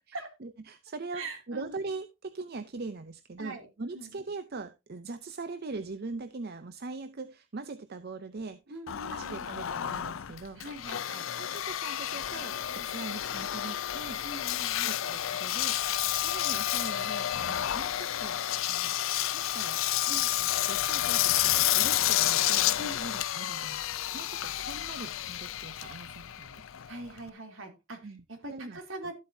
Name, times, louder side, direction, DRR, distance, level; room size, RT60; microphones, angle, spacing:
voice 1, 0.4-8.8 9.1-10.6 11.4-14.2 14.8-15.8 16.1-18.4 18.7-19.0 19.3-19.8 20.2-23.8 24.1-26.6 28.0-28.2 28.5-28.8, right 3 dB, 50° right, 11 dB, 0.6 m, -41 dB
voice 2, 1.1-1.7 3.4-3.7 3.9-4.2 8.7-9.5 10.6-11.3 12.7-12.9 14.2-14.9 20.1-20.3 22.8-23.0 26.9-29.1, right 2 dB, 70° right, 4 dB, 3.0 m, -42 dB
Engine, 8.9-27.3, left 12 dB, 75° left, 0.5 m, -30 dB
13.0 x 7.9 x 2.7 m, 0.24 s
head